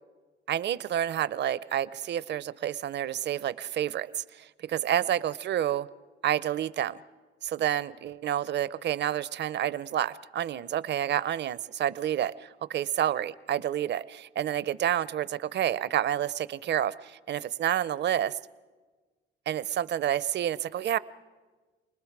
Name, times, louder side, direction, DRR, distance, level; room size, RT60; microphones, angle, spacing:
voice 1, 0.5-5.9 6.2-7.0 7.4-18.3 19.5-21.0, right 11 dB, 60° right, 17 dB, 0.6 m, -29 dB
29.0 x 20.0 x 4.7 m, 1.3 s
cardioid pair, 90°, 20 cm